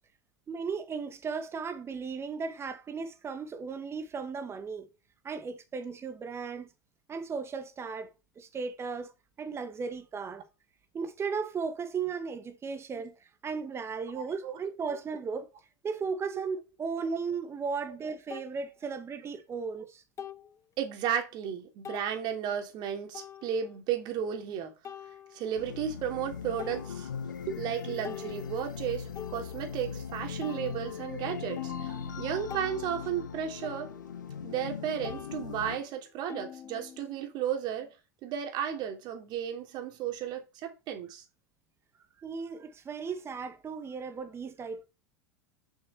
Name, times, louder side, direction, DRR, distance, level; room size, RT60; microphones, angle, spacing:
voice 1, 0.5-4.9 5.2-6.7 7.1-9.1 9.4-10.4 10.9-13.1 13.4-15.5 15.8-20.0 42.2-44.8, right 5 dB, 25° right, 1.9 m, -36 dB
voice 2, 14.1-14.6 20.8-24.7 25.3-27.1 27.5-33.9 34.4-37.9 38.2-41.2, right 9 dB, 50° right, 3.2 m, -34 dB
sound 1, 17.5-17.6 18.3-18.5 20.2-20.6 21.2-21.3 21.8-22.1 23.1-23.8 24.8-25.7 26.2-26.3 26.6-27.4 27.8-30.0 30.4-34.8 35.0-37.3, left 9 dB, 30° left, 0.9 m, -46 dB
sound 2, 25.6-35.8, left 7 dB, 85° left, 1.0 m, -39 dB
7.4 x 6.3 x 6.6 m
hypercardioid pair, 90°, 10 cm